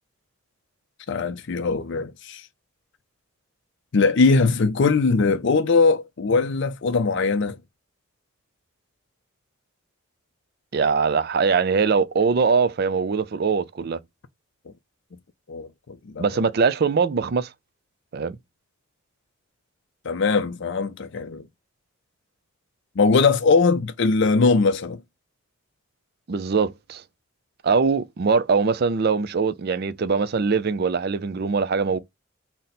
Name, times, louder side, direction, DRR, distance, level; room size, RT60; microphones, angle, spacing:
voice 1, 1.1-2.5 3.9-7.6 15.5-16.2 20.0-21.5 23.0-25.0, left 4 dB, 55° left, 0.4 m, -21 dB
voice 2, 10.7-14.0 16.2-17.5 18.1-18.4 26.3-27.0 27.6-32.0, right 5 dB, 45° right, 0.4 m, -22 dB
3.9 x 2.1 x 4.0 m
head